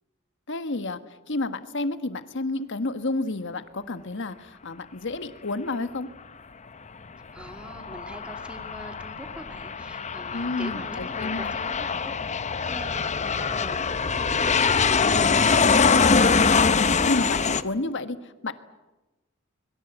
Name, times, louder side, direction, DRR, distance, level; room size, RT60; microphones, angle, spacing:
voice 1, 0.5-1.0 1.3-6.1 10.3-11.5 16.6-18.5, left 2 dB, 60° left, 10 dB, 1.4 m, -30 dB
voice 2, 7.3-12.1 12.6-15.4, equal, 5° right, 5 dB, 2.6 m, -42 dB
Aircraft, 7.4-17.6, left 5 dB, 35° left, 0.8 m, -23 dB
25.0 x 22.0 x 8.0 m, 1.1 s
head